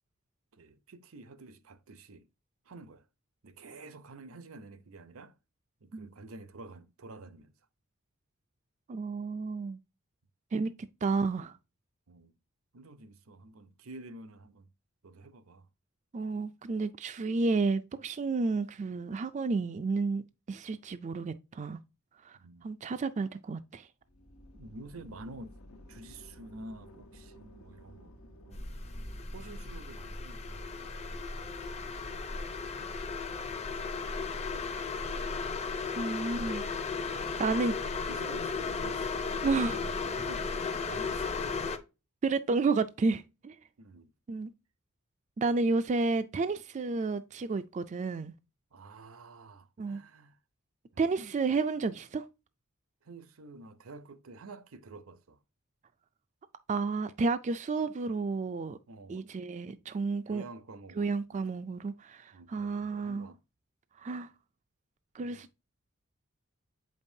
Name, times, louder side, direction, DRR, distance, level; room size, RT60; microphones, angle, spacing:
voice 1, 0.5-2.3 2.6-3.0 3.4-5.4 5.8-7.5 12.1-12.3 12.7-14.7 15.0-15.7 22.3-22.7 24.5-25.6 25.9-28.7 29.3-33.1 33.6-34.4 35.1-35.5 37.3-40.5 40.9-41.5 43.8-44.1 48.7-50.4 50.9-51.0 53.0-55.4 58.9-59.3 60.3-61.5 62.3-63.4 65.2-65.4, right 2 dB, 75° right, 0.7 m, -50 dB
voice 2, 8.9-9.8 10.5-10.7 11.0-11.5 16.1-20.2 20.5-21.8 22.2-23.9 36.0-36.6 37.4-37.7 39.4-39.8 42.2-43.6 44.3-44.5 45.4-48.3 49.8-50.0 51.0-52.2 56.7-58.8 59.1-60.4 61.0-63.2 64.0-64.3 65.1-65.5, right 4 dB, 35° right, 0.4 m, -31 dB
sound 1, 24.0-34.0, equal, 80° left, 1.1 m, -55 dB
sound 2, 28.5-41.8, left 4 dB, 30° left, 0.7 m, -35 dB
7.6 x 5.3 x 2.7 m
head